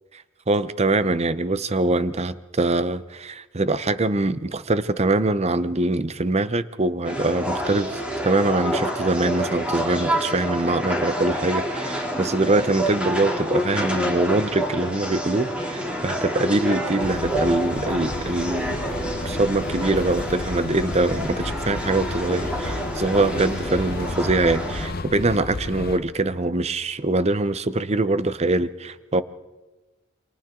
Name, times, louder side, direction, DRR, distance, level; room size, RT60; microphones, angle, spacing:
voice 1, 0.5-18.8 19.2-29.2, right 2 dB, 35° right, 14 dB, 0.7 m, -23 dB
sound 1, 7.0-24.9, equal, 5° right, 2.9 m, -28 dB
sound 2, 17.0-26.0, left 2 dB, 50° left, 0.9 m, -32 dB
28.5 x 25.5 x 3.8 m, 1.1 s
head